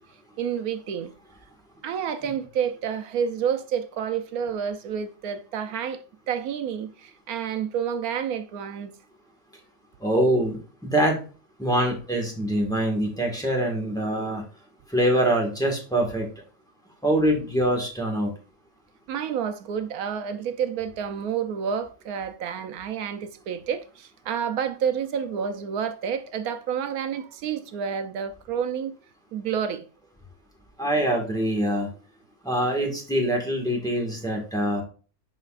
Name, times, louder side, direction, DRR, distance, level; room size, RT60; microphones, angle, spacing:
voice 1, 0.4-1.1 1.8-8.9 19.1-28.9 29.3-29.9, right 7 dB, 80° right, 1.1 m, -29 dB
voice 2, 10.0-11.2 11.6-14.4 14.9-16.3 17.0-18.3 30.8-31.9 32.4-34.8, right 1 dB, 5° left, 1.5 m, -24 dB
10.5 x 4.1 x 2.4 m
omnidirectional pair, 1.5 m